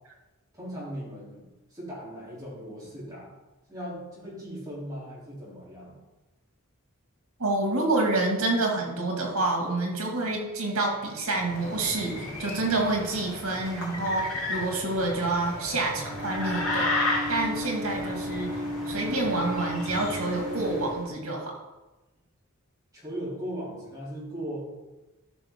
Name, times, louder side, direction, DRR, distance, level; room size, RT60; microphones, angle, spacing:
voice 1, 0.5-3.3 3.7-6.0 22.9-24.7, equal, 15° right, -7 dB, 3.3 m, -38 dB
voice 2, 7.4-16.9 17.3-18.6 18.9-21.5, right 2 dB, 90° right, 0 dB, 2.3 m, -28 dB
sound 1, 10.3-21.4, equal, 45° right, 0.7 m, -38 dB
sound 2, 11.3-21.0, left 2 dB, 80° left, 3.0 m, -34 dB
12.5 x 5.7 x 3.8 m, 1.1 s
head